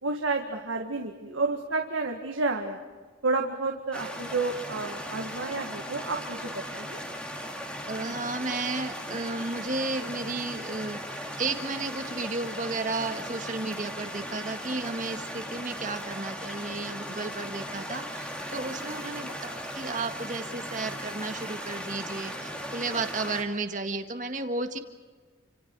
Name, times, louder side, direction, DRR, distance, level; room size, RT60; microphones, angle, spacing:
voice 1, 0.0-2.8 3.2-7.0, right 3 dB, 90° right, 2 dB, 1.9 m, -30 dB
sound 1, 3.9-23.4, equal, 5° left, 2.6 m, -38 dB
voice 2, 7.9-11.0 11.4-24.8, right 3 dB, 40° right, 6 dB, 1.8 m, -33 dB
30.0 x 26.5 x 4.8 m, 1.4 s
head